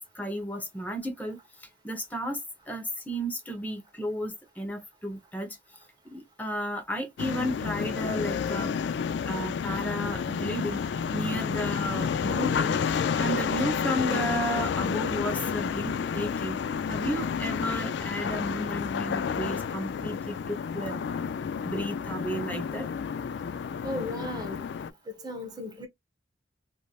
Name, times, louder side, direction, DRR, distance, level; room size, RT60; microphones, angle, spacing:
voice 1, 0.1-5.6 6.0-8.7 9.2-16.6 16.9-21.4 21.6-22.9, equal, 10° left, 0.8 m, -33 dB
sound 1, 7.2-24.9, left 6 dB, 65° left, 0.3 m, -30 dB
voice 2, 23.8-24.7 25.2-25.9, left 1 dB, 20° right, 0.9 m, -36 dB
3.2 x 2.6 x 2.3 m
head